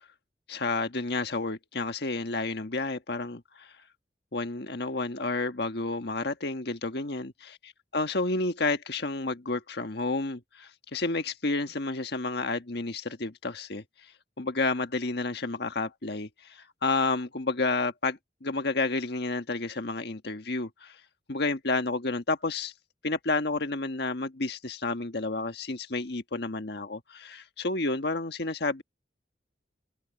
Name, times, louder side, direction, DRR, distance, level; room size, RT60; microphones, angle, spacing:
voice 1, 0.5-3.7 4.3-13.8 14.4-21.0 21.3-22.7 23.0-28.8, left 3 dB, 60° left, 1.5 m, -30 dB
head